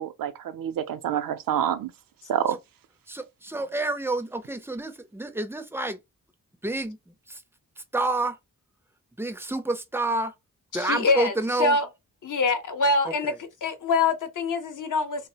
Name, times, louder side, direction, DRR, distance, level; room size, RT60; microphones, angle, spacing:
voice 1, 0.0-1.9 2.3-2.6, right 10 dB, 75° right, 0.5 m, -27 dB
voice 2, 3.1-6.0 6.6-7.4 7.9-8.4 9.2-10.3 10.7-11.8 13.0-13.3, right 2 dB, 5° right, 0.4 m, -29 dB
voice 3, 10.7-11.3 11.6-11.9 12.2-13.3 13.6-15.3, left 3 dB, 65° left, 0.8 m, -24 dB
3.2 x 2.0 x 2.7 m
wide cardioid pair, 100°, 34 cm